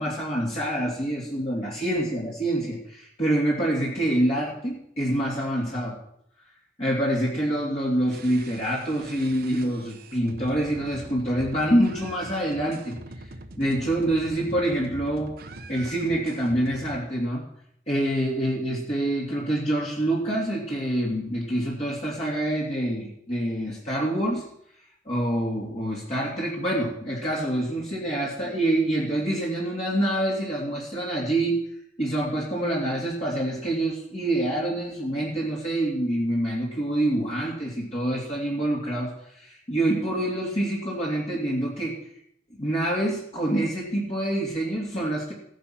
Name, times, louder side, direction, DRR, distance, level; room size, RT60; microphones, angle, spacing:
voice 1, 0.0-6.0 6.8-13.3 13.6-15.3 15.7-17.4 17.9-24.4 25.1-31.6 32.0-41.9 42.6-45.3, right 1 dB, 35° left, -4 dB, 2.7 m, -26 dB
sound 1, 8.1-17.0, right 2 dB, 55° right, 1.2 m, -42 dB
15.5 x 10.0 x 6.0 m, 0.72 s
head